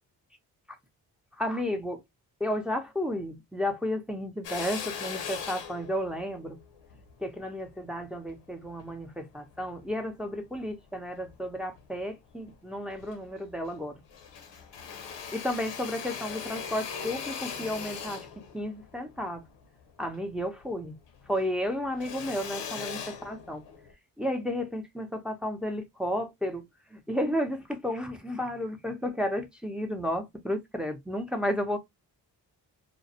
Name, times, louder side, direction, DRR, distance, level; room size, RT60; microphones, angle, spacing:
voice 1, 1.4-2.0 2.4-6.6 7.2-14.0 15.3-18.3 18.5-19.4 20.0-20.9 21.3-23.6 24.2-26.6 26.9-31.8, left 1 dB, ahead, 0.5 m, -32 dB
Drill, 4.4-9.0 9.5-10.7 11.2-12.1 12.5-12.6 12.8-13.8 14.1-20.8 21.1-23.9, left 7 dB, 85° left, 0.6 m, -40 dB
2.3 x 2.0 x 2.7 m
cardioid pair, 65°, 42 cm